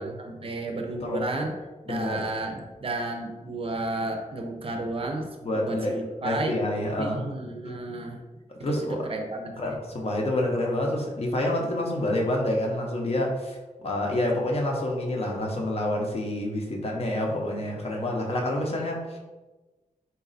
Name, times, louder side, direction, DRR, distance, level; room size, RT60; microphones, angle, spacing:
voice 1, 0.0-1.6 1.8-6.6 7.0-8.2 8.6-9.7, right 2 dB, 45° right, 3 dB, 0.5 m, -32 dB
voice 2, 1.9-2.3 5.4-5.9 6.2-7.2 8.5-9.1 9.6-19.2, left 1 dB, 45° left, 0 dB, 0.7 m, -28 dB
4.0 x 2.3 x 3.9 m, 1.2 s
wide cardioid pair, 165°, 14 cm